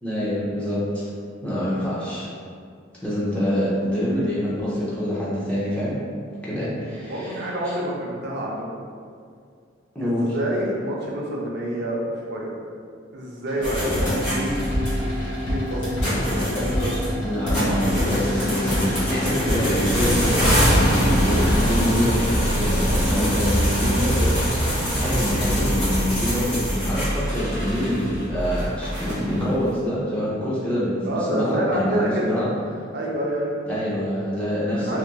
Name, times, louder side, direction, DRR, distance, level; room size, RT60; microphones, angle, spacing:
voice 1, 0.0-1.1 1.4-2.3 3.0-6.0 6.4-7.7 9.9-10.2 17.2-32.5 33.7-35.0, equal, 5° left, -10 dB, 0.6 m, -26 dB
voice 2, 7.0-8.8 10.0-12.5 13.1-14.7 15.4-15.9 16.3-17.1 24.0-24.3 31.0-32.4 32.9-33.6 34.9-35.0, right 1 dB, 55° right, -3 dB, 0.5 m, -28 dB
sound 1, 13.5-21.7, left 1 dB, 70° left, 0.7 m, -27 dB
sound 2, 13.6-29.6, equal, 40° left, 1.0 m, -24 dB
2.9 x 2.5 x 2.2 m, 2.2 s
head